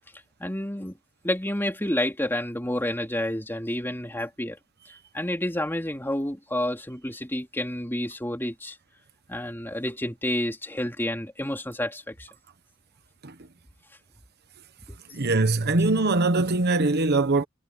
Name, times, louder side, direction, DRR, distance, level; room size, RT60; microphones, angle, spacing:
voice 1, 0.4-1.0 1.2-4.6 5.1-8.8 9.3-12.3 14.9-15.0, left 1 dB, 10° left, 3.0 m, -29 dB
voice 2, 15.1-17.4, right 2 dB, 50° right, 1.2 m, -22 dB
head